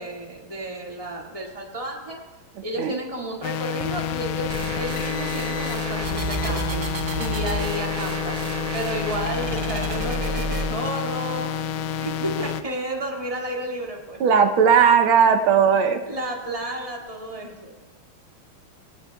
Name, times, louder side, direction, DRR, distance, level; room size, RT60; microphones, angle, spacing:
voice 1, 0.0-2.2 2.6-8.4 8.7-14.2 16.1-17.8, right 1 dB, 15° right, -2 dB, 2.0 m, -32 dB
sound 1, 3.4-12.6, left 8 dB, 80° left, 1.4 m, -29 dB
sound 2, 4.5-10.7, right 3 dB, 45° right, 0.6 m, -31 dB
voice 2, 14.2-16.0, right 7 dB, 80° right, 6 dB, 1.7 m, -17 dB
23.0 x 18.5 x 2.3 m, 1.3 s
omnidirectional pair, 2.3 m